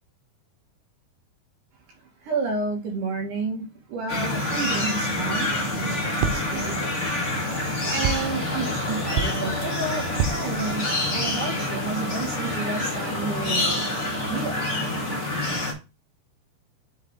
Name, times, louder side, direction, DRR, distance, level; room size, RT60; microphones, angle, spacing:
voice 1, 2.2-5.5 5.8-6.7 7.9-13.8 14.3-14.6, right 4 dB, 60° right, 1 dB, 2.8 m, -31 dB
sound 1, 4.1-15.7, left 1 dB, 50° left, 0.8 m, -27 dB
sound 2, 6.2-6.8 8.1-8.5 9.2-9.7 10.2-10.8, right 7 dB, 90° right, 2.8 m, -28 dB
7.4 x 4.7 x 3.6 m, 0.29 s
omnidirectional pair, 4.8 m